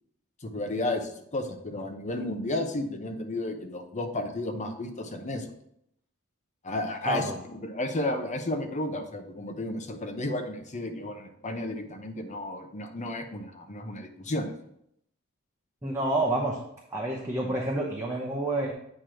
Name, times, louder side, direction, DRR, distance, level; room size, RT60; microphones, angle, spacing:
voice 1, 0.4-5.5 6.6-7.3 7.6-14.5, left 1 dB, 35° left, 5 dB, 0.8 m, -33 dB
voice 2, 7.1-7.4 15.8-16.6 16.9-18.7, right 1 dB, 15° right, -3 dB, 0.8 m, -28 dB
8.6 x 3.1 x 6.2 m, 0.74 s
head